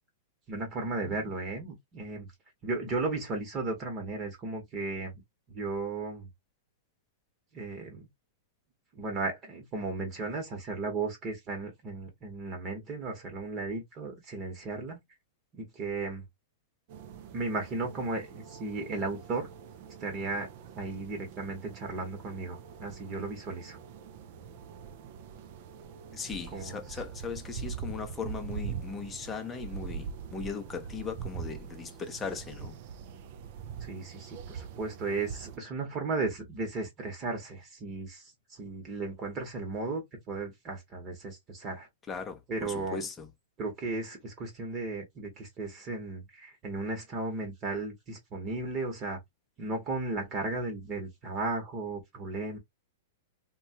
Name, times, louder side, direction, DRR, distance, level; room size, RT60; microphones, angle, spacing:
voice 1, 0.5-2.3 2.6-5.2 5.5-6.3 7.5-8.1 8.9-15.0 15.5-16.2 17.3-19.5 20.0-20.5 20.7-23.8 26.5-27.0 33.8-38.2 38.5-41.9 42.5-43.1 43.6-49.2 49.6-52.6, right 3 dB, 30° right, 1.1 m, -35 dB
sound 1, 16.9-35.6, right 7 dB, 50° right, 0.4 m, -43 dB
voice 2, 26.1-32.8 42.1-43.3, left 5 dB, 15° left, 0.7 m, -38 dB
3.0 x 2.3 x 2.8 m
hypercardioid pair, 145°, 0 cm